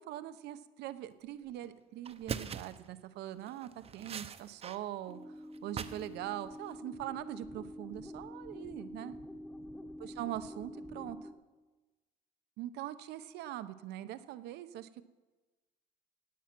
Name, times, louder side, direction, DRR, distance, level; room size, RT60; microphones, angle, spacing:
voice 1, 0.1-9.2 10.0-11.3 12.6-15.0, right 13 dB, 80° right, 12 dB, 0.7 m, -42 dB
sound 1, 1.5-1.7 2.0-2.8 3.4-4.8 5.0-6.1 6.4-6.8, right 7 dB, 35° right, 0.7 m, -42 dB
sound 2, 5.1-11.3, equal, 15° left, 1.3 m, -47 dB
17.0 x 8.5 x 6.0 m, 1.2 s
cardioid pair, 110°, 17 cm